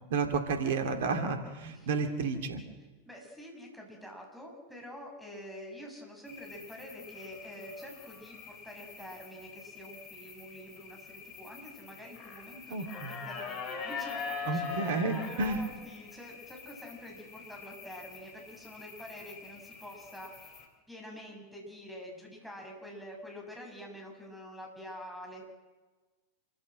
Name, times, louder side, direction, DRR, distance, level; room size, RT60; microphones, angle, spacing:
voice 1, 0.1-2.6 12.7-13.2 14.4-15.6, right 4 dB, 55° right, 6 dB, 2.7 m, -31 dB
voice 2, 3.1-14.8 15.2-20.3 20.9-25.5, equal, ahead, 0 dB, 7.2 m, -47 dB
sound 1, 6.3-20.7, left 5 dB, 35° left, 4.2 m, -44 dB
27.5 x 15.0 x 7.7 m, 1.3 s
figure-of-eight pair, 90°, 0 cm